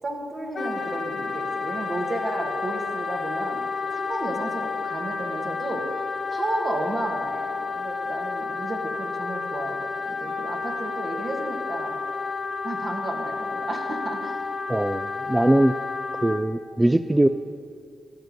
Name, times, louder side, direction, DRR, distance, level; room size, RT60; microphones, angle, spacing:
voice 1, 0.0-5.8 6.3-12.0 12.6-14.4, right 2 dB, 50° right, 1 dB, 2.0 m, -33 dB
Wind instrument woodwind instrument, 0.5-16.4, left 4 dB, 55° left, 0.8 m, -31 dB
voice 2, 14.7-15.7 16.2-17.3, right 1 dB, 15° right, 10 dB, 0.4 m, -21 dB
13.5 x 8.1 x 5.3 m, 2.4 s
supercardioid pair, 50°, 0 cm